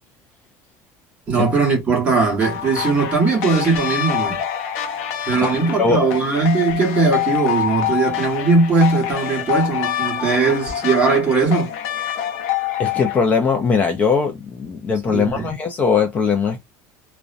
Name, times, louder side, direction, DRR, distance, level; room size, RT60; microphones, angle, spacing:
voice 1, 1.3-4.4 5.3-11.7 15.1-15.5, right 4 dB, 20° right, 1.0 m, -19 dB
sound 1, 2.4-13.2, left 10 dB, 85° left, 0.6 m, -26 dB
voice 2, 12.8-16.6, left 5 dB, 20° left, 0.3 m, -20 dB
2.4 x 2.1 x 2.4 m
cardioid pair, 170°, 8 cm